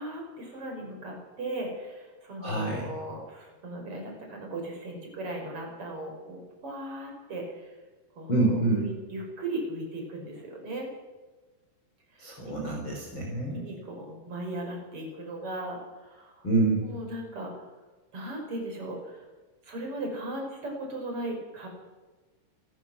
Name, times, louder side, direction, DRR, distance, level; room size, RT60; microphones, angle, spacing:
voice 1, 0.0-7.8 8.1-10.9 12.1-12.5 13.5-16.5 16.8-17.7 18.1-19.3 19.6-21.7, right 1 dB, 25° right, 1 dB, 5.9 m, -37 dB
voice 2, 2.4-2.9 8.3-8.9 12.2-13.6 16.4-16.9, right 2 dB, 25° left, -1 dB, 4.1 m, -27 dB
29.5 x 14.0 x 6.3 m, 1.3 s
omnidirectional pair, 5.9 m